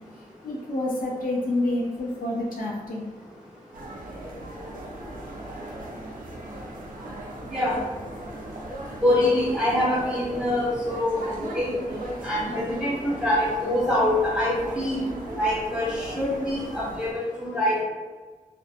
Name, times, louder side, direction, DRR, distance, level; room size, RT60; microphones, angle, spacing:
voice 1, 0.4-3.1, left 1 dB, 75° left, -3 dB, 0.6 m, -28 dB
sound 1, 3.7-17.1, right 1 dB, 70° right, 0.5 m, -38 dB
voice 2, 9.0-11.7 12.2-15.0 15.3-17.8, left 1 dB, 5° right, -8 dB, 1.1 m, -25 dB
2.5 x 2.1 x 2.7 m, 1.4 s
cardioid pair, 65°, 15 cm